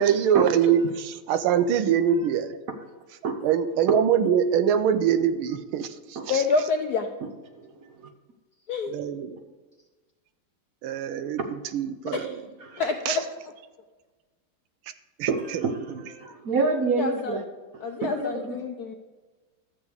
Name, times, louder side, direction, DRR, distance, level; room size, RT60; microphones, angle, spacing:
voice 1, 0.0-2.5 3.4-6.4 8.9-9.4 10.8-11.4 11.7-12.4 13.1-13.2 15.2-15.3, right 8 dB, 80° right, 11 dB, 1.5 m, -23 dB
voice 2, 6.3-7.1 8.7-8.9 12.1-12.4 12.8-13.2 17.0-17.4 17.8-18.9, left 4 dB, 70° left, 4 dB, 0.9 m, -27 dB
voice 3, 7.5-8.1 12.6-12.8 15.3-17.4 18.2-18.6, right 4 dB, 55° right, 4 dB, 1.0 m, -28 dB
12.5 x 8.0 x 3.5 m, 1.3 s
omnidirectional pair, 2.3 m